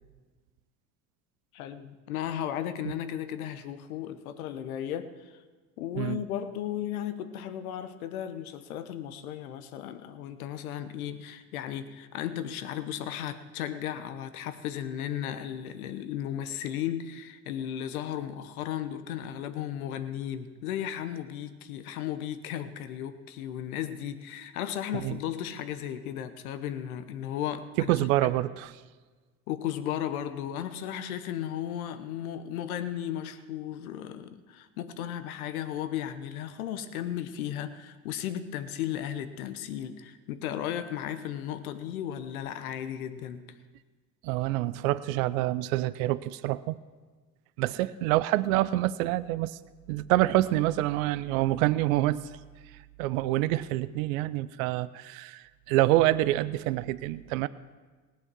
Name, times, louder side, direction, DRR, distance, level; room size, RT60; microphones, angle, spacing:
voice 1, 1.5-5.3 5.8-27.9 28.2-28.3 29.5-43.5, left 10 dB, 75° left, 11 dB, 1.1 m, -35 dB
voice 2, 27.8-28.7 44.2-46.8 47.6-49.6 49.9-52.2 53.0-57.5, right 16 dB, 70° right, 16 dB, 0.6 m, -26 dB
18.5 x 8.2 x 6.2 m, 1.4 s
hypercardioid pair, 70°, 43 cm